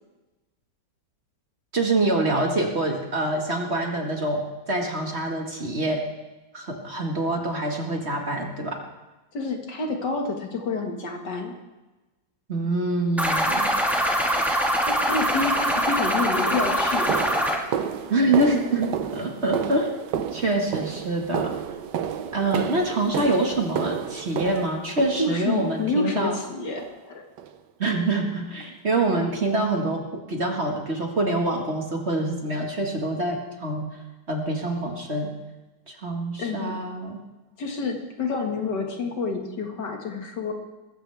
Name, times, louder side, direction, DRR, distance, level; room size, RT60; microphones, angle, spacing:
voice 1, 1.7-6.0 6.5-8.8 12.5-13.7 18.1-21.5 22.3-26.3 27.8-33.9 34.3-35.3 35.9-37.2, right 2 dB, 35° right, 1 dB, 2.0 m, -25 dB
voice 2, 9.3-11.5 14.8-17.4 25.2-27.3 36.4-36.7 37.6-40.5, left 3 dB, 65° left, 3 dB, 2.4 m, -28 dB
sound 1, 13.2-17.6, equal, ahead, 1.6 m, -23 dB
sound 2, 15.8-15.9 16.5-25.7 26.2-26.5 26.8-27.0 27.4-27.6 28.0-28.1 28.6-28.7, right 8 dB, 70° right, 1.4 m, -31 dB
20.0 x 15.5 x 3.5 m, 1.1 s
omnidirectional pair, 2.0 m